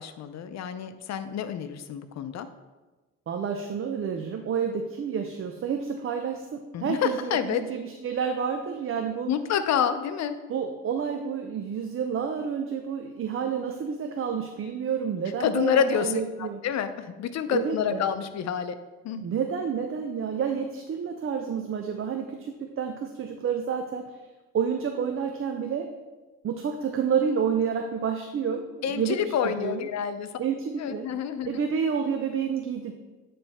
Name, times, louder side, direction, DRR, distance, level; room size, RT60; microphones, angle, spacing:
voice 1, 0.0-2.5 6.7-7.6 9.3-10.3 15.4-18.7 19.0-19.2 28.8-30.3 30.8-31.5, left 8 dB, 65° left, 10 dB, 0.6 m, -28 dB
voice 2, 3.3-9.3 10.5-16.6 17.5-18.1 19.1-24.1 24.5-25.9 26.4-29.9 30.4-31.1 31.5-32.9, right 7 dB, 45° right, 5 dB, 0.6 m, -29 dB
8.8 x 3.4 x 4.2 m, 1.2 s
cardioid pair, 90°, 30 cm